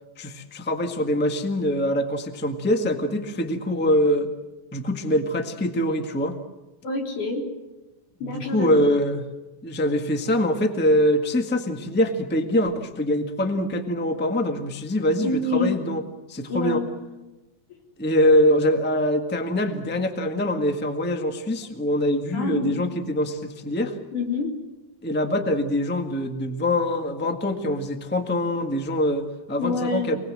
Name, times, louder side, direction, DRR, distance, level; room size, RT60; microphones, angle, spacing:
voice 1, 0.2-4.3 4.7-6.4 8.2-9.3 9.6-16.0 16.3-16.8 18.0-23.9 25.0-30.2, left 1 dB, 5° left, 5 dB, 0.9 m, -24 dB
voice 2, 6.8-7.5 8.2-8.8 15.2-15.8 16.5-16.9 22.3-22.8 24.1-24.5 29.6-30.1, left 3 dB, 85° left, 2 dB, 5.3 m, -26 dB
28.0 x 20.0 x 7.7 m, 1.0 s
omnidirectional pair, 3.5 m